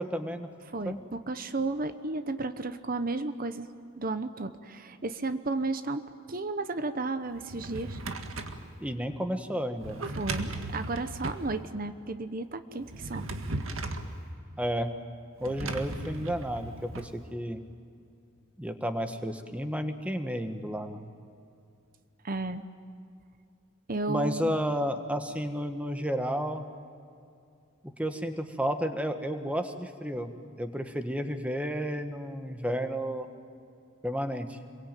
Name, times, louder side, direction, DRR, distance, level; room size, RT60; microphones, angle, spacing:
voice 1, 0.0-0.5 0.8-1.0 8.8-10.1 14.6-14.9 15.4-17.6 18.6-21.1 24.1-26.6 28.0-30.3 30.6-33.3 34.0-34.6, equal, 5° right, 7 dB, 1.5 m, -32 dB
voice 2, 0.7-3.7 4.0-6.0 6.3-8.0 10.2-13.3 22.2-22.6 23.9-24.5, right 3 dB, 45° right, 10 dB, 0.9 m, -33 dB
Drawer open or close, 7.3-8.7 9.8-11.5 12.8-14.1 15.4-17.1, right 2 dB, 80° right, 1.9 m, -37 dB
26.5 x 23.0 x 9.2 m, 2.5 s
head